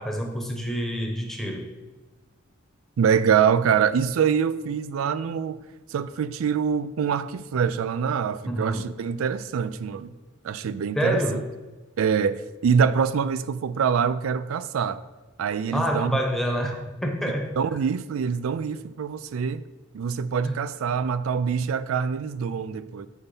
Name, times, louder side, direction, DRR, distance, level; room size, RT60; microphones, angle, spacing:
voice 1, 0.0-1.7 8.5-8.9 10.9-11.5 15.7-17.5 20.4-20.5, equal, ahead, 0.9 m, -27 dB
voice 2, 3.0-5.6 5.9-10.1 10.4-11.4 12.0-15.0 15.4-16.2 17.6-19.7 19.9-23.1, right 7 dB, 90° right, 0.4 m, -25 dB
7.2 x 4.1 x 5.3 m
head